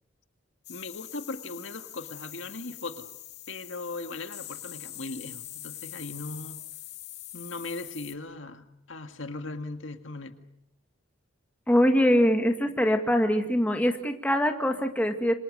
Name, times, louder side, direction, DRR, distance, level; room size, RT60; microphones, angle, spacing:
sound 1, 0.6-8.1, left 14 dB, 55° left, 2.2 m, -43 dB
voice 1, 0.7-3.1 3.5-6.6 7.3-10.3, left 2 dB, 75° left, 7 dB, 1.9 m, -38 dB
voice 2, 11.7-15.3, equal, 5° left, 4 dB, 2.1 m, -23 dB
27.5 x 26.5 x 6.7 m, 0.79 s
head